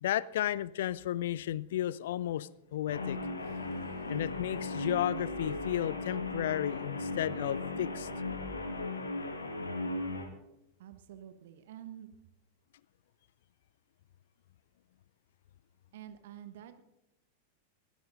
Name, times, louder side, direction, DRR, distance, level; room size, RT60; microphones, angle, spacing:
voice 1, 0.0-3.2 4.1-8.1, left 12 dB, 55° left, 22 dB, 0.4 m, -33 dB
Guitar, 2.9-10.3, left 2 dB, 75° left, 1.5 m, -37 dB
voice 2, 10.8-12.1 15.9-16.8, right 11 dB, 55° right, 10 dB, 1.2 m, -48 dB
21.0 x 16.5 x 2.6 m, 0.88 s
figure-of-eight pair, 90°, 0 cm